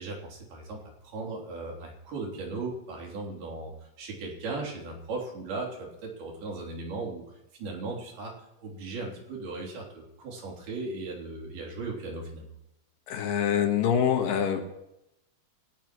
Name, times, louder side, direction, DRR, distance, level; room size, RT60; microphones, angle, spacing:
voice 1, 0.0-7.2 7.6-8.3 8.6-12.5, right 3 dB, 90° right, -1 dB, 5.2 m, -37 dB
voice 2, 13.1-14.6, left 8 dB, 70° left, 4 dB, 3.0 m, -25 dB
28.5 x 15.0 x 3.1 m, 0.86 s
omnidirectional pair, 4.3 m